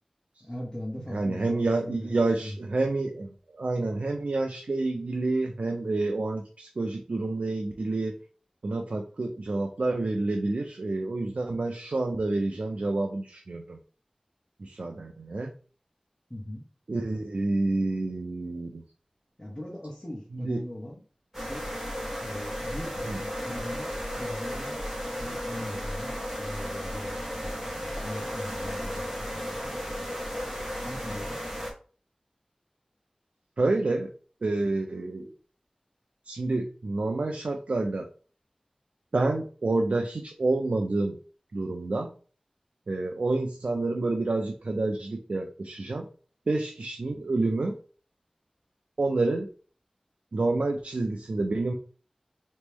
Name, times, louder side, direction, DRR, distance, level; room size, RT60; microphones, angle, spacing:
voice 1, 0.4-2.6 16.3-16.6 19.4-21.0 21.3-21.7 22.2-24.8 25.2-30.1 30.8-31.4, left 1 dB, 20° left, -5 dB, 1.3 m, -40 dB
voice 2, 1.1-8.1 8.6-13.8 14.6-15.5 16.9-18.8 20.3-20.6 23.1-23.2 33.6-34.1 34.4-35.3 36.3-38.1 39.1-41.1 41.5-42.1 42.9-46.1 46.5-47.8 49.0-49.5 50.3-51.7, right 2 dB, 85° right, 3 dB, 0.5 m, -28 dB
sound 1, 21.3-31.7, equal, 15° right, 1.5 m, -34 dB
4.1 x 3.1 x 3.5 m, 0.40 s
wide cardioid pair, 45°, 2 cm